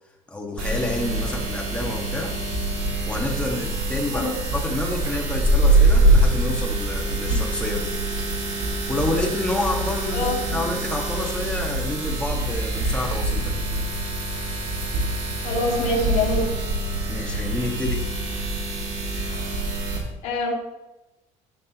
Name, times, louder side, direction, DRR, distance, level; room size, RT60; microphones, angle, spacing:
voice 1, 0.3-2.3 3.0-7.9 8.9-13.5 17.1-18.1, left 2 dB, 10° left, -1 dB, 1.7 m, -29 dB
sound 1, 0.6-20.0, right 2 dB, 60° right, 2.9 m, -24 dB
voice 2, 10.1-10.7 15.4-16.5 20.2-20.5, left 2 dB, 60° left, -4 dB, 3.9 m, -25 dB
17.0 x 6.0 x 3.0 m, 0.97 s
cardioid pair, 165°, 14 cm